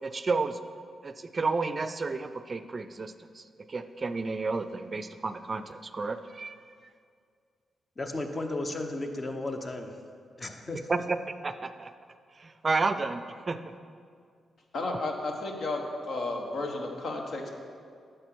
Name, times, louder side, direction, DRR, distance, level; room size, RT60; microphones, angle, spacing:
voice 1, 0.0-0.6 1.0-3.4 3.7-6.6 10.9-11.2 11.4-11.9 12.4-13.6, right 3 dB, 45° right, 11 dB, 0.4 m, -31 dB
voice 2, 8.0-9.9 10.4-11.0, left 2 dB, 35° left, 5 dB, 1.0 m, -34 dB
voice 3, 14.7-15.8 16.1-17.5, left 2 dB, 65° left, 2 dB, 1.2 m, -32 dB
9.8 x 6.6 x 4.6 m, 2.2 s
hypercardioid pair, 40°, 0 cm